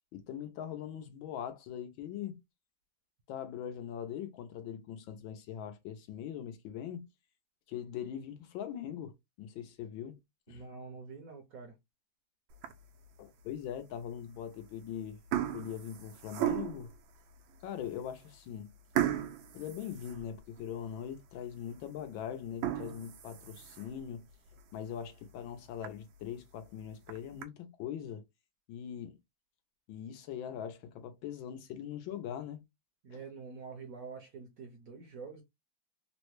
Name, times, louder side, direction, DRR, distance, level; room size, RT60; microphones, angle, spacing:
voice 1, 0.1-2.4 3.3-7.1 7.7-10.2 10.5-10.6 13.2-15.2 15.5-16.9 17.6-18.7 19.5-24.2 24.7-28.2 28.7-29.2 29.9-32.6 33.1-33.2, left 9 dB, 80° left, 1.4 m, -41 dB
voice 2, 10.5-11.8 33.0-35.4, right 5 dB, 65° right, 0.9 m, -46 dB
sound 1, 12.5-13.0 13.6-13.7 14.6-14.8 15.1-17.0 17.6-17.7 18.0-18.2 19.0-20.7 21.1-21.2 21.7-21.8 22.4-24.0 24.5-24.6 25.0-25.1 25.4-25.5 25.8-25.9 26.8-27.4, right 12 dB, 85° right, 1.4 m, -35 dB
3.8 x 2.1 x 3.0 m
omnidirectional pair, 2.1 m